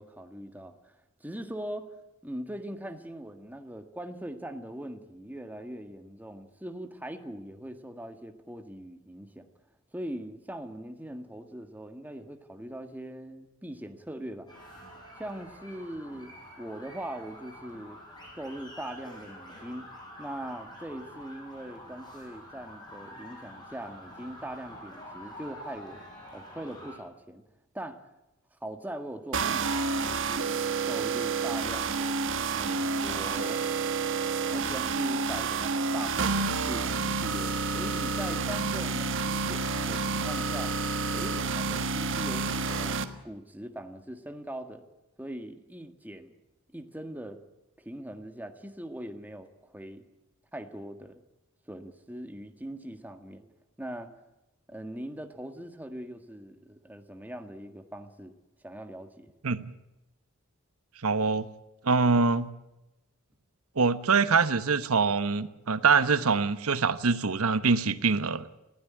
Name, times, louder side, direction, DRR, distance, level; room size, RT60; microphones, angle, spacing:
voice 1, 0.0-1.9 2.2-9.5 9.9-14.5 15.2-18.0 18.3-19.9 20.2-26.0 26.3-27.4 27.7-28.1 28.6-29.8 30.1-30.6 30.9-32.2 32.5-33.6 34.5-40.7 41.1-43.0 43.2-44.8 45.2-46.3 46.7-47.4 47.8-50.0 50.5-51.2 51.7-53.4 53.8-54.1 54.7-58.3 58.6-59.3, right 1 dB, 10° right, 7 dB, 1.6 m, -41 dB
sound 1, 14.5-27.0, equal, 20° left, 6.9 m, -47 dB
sound 2, 29.3-43.0, right 4 dB, 60° right, 1.5 m, -29 dB
voice 2, 61.0-61.5 61.8-62.5 63.8-68.5, right 4 dB, 85° right, 13 dB, 1.1 m, -24 dB
20.0 x 16.0 x 10.0 m, 0.95 s
head